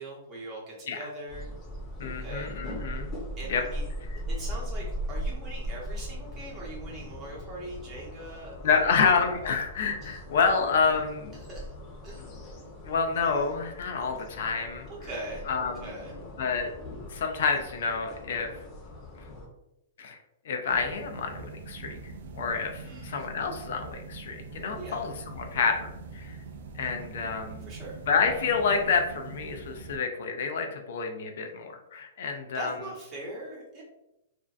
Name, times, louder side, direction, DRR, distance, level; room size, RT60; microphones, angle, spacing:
voice 1, 0.0-1.5 2.2-2.5 3.4-3.9 4.3-9.1 10.0-10.2 11.3-11.7 12.0-12.3 14.9-16.1 22.8-23.3 24.7-25.1 27.7-28.0 32.5-33.8, right 1 dB, 25° right, -4 dB, 0.9 m, -41 dB
sound 1, 1.3-19.5, equal, 35° left, 0.7 m, -39 dB
voice 2, 2.0-3.1 3.5-3.6 8.6-11.3 12.8-14.9 15.5-15.9 16.4-16.7 17.1-18.5 20.0-20.2 20.5-22.0 22.3-25.9 26.1-26.3 26.8-27.7 28.1-32.7, left 5 dB, 65° left, 4 dB, 0.4 m, -28 dB
sound 2, 20.7-30.0, right 4 dB, 65° right, 0.3 m, -43 dB
2.5 x 2.1 x 2.4 m, 0.88 s
hypercardioid pair, 145°, 0 cm